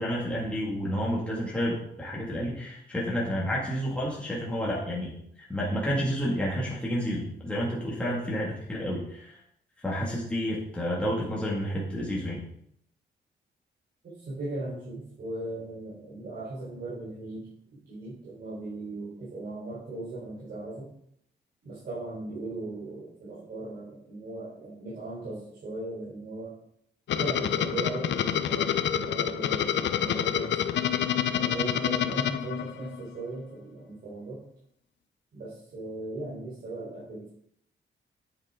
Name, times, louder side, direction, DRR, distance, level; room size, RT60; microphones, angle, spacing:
voice 1, 0.0-9.4 9.8-12.4, equal, 5° left, -5 dB, 2.1 m, -30 dB
voice 2, 14.2-17.5 17.9-20.9 21.6-26.5 27.1-30.6 31.3-34.4 35.3-37.3, right 2 dB, 55° right, -9 dB, 4.1 m, -38 dB
sound 1, 27.1-33.1, left 10 dB, 85° left, 0.6 m, -27 dB
9.0 x 9.0 x 3.7 m, 0.70 s
wide cardioid pair, 175°, 19 cm